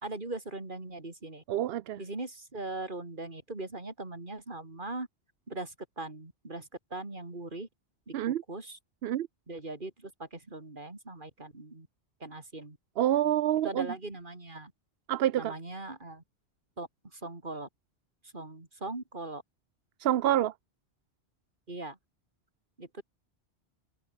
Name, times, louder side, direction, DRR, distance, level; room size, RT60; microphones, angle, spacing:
voice 1, 0.0-1.4 2.0-5.1 5.5-7.7 8.1-8.8 9.5-11.9 12.2-12.8 13.6-14.7 15.4-16.2 16.8-17.7 18.3-19.4 21.7-22.0 22.8-23.0, right 2 dB, 50° right, 3.5 m, -40 dB
voice 2, 1.5-2.0 8.1-8.4 9.0-9.3 13.0-13.9 15.1-15.6 20.0-20.5, right 12 dB, 65° right, 0.8 m, -27 dB
open air
omnidirectional pair, 1.1 m